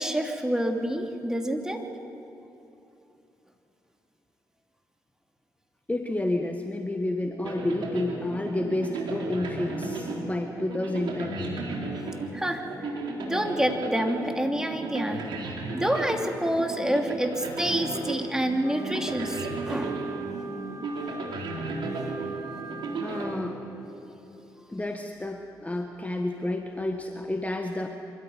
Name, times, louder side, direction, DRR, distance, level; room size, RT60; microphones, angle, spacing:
voice 1, 0.0-1.8 12.3-12.7 13.2-15.2 15.7-20.0, equal, 5° right, 3 dB, 2.9 m, -28 dB
voice 2, 5.9-11.6 23.0-23.6 24.7-27.9, left 2 dB, 15° left, 4 dB, 1.6 m, -30 dB
sound 1, 7.4-24.0, right 2 dB, 60° right, 3.8 m, -34 dB
Wind instrument woodwind instrument, 18.6-23.4, right 4 dB, 35° right, 2.1 m, -39 dB
25.5 x 13.5 x 9.4 m, 2.9 s
hypercardioid pair, 45°, 9 cm